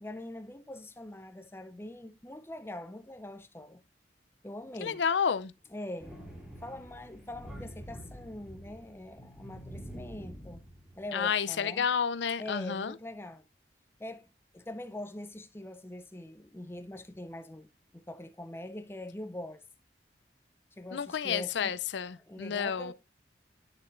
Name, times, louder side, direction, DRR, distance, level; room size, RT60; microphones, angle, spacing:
voice 1, 0.0-3.8 4.4-5.0 5.7-6.2 6.6-10.6 11.0-11.9 12.4-13.4 14.0-14.3 14.5-17.7 17.9-19.6 20.8-21.8 22.2-22.9, left 1 dB, 15° left, 0.5 m, -43 dB
voice 2, 4.8-5.5 11.1-12.9 20.9-22.9, left 7 dB, 75° left, 0.5 m, -30 dB
Thunder, 6.0-11.1, equal, 5° right, 2.6 m, -47 dB
9.8 x 6.8 x 2.5 m
head